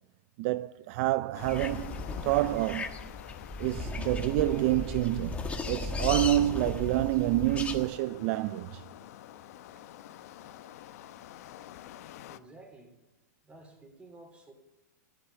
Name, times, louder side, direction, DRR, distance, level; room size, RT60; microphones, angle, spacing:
voice 1, 0.4-3.1 3.6-8.8, right 16 dB, 45° right, 0.4 m, -28 dB
sound 1, 1.3-12.4, left 12 dB, 60° left, 0.9 m, -48 dB
sound 2, 1.4-7.9, left 3 dB, 15° left, 1.4 m, -36 dB
voice 2, 12.3-12.9 13.4-14.5, right 2 dB, 15° right, 3.8 m, -52 dB
15.5 x 12.0 x 7.0 m
hypercardioid pair, 135°, 9 cm